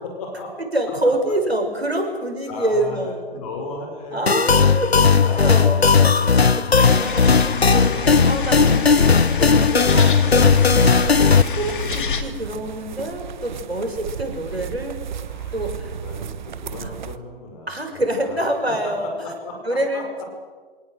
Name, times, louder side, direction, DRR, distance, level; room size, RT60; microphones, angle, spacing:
voice 1, 0.0-0.5 2.5-6.2 14.5-14.7 15.3-18.4 18.8-20.3, left 3 dB, 35° left, 2 dB, 6.0 m, -36 dB
voice 2, 0.7-3.2 4.1-6.3 6.6-15.0 15.5-15.9 16.8-16.9 17.7-19.1 19.6-20.3, right 1 dB, 85° right, 3 dB, 6.3 m, -26 dB
sound 1, 4.3-11.4, left 5 dB, 85° left, 0.8 m, -16 dB
sound 2, 6.8-12.2, left 5 dB, 55° left, 2.9 m, -27 dB
sound 3, 10.4-17.2, right 8 dB, 50° right, 1.3 m, -33 dB
27.0 x 18.5 x 8.0 m, 1.5 s
figure-of-eight pair, 125°, 30 cm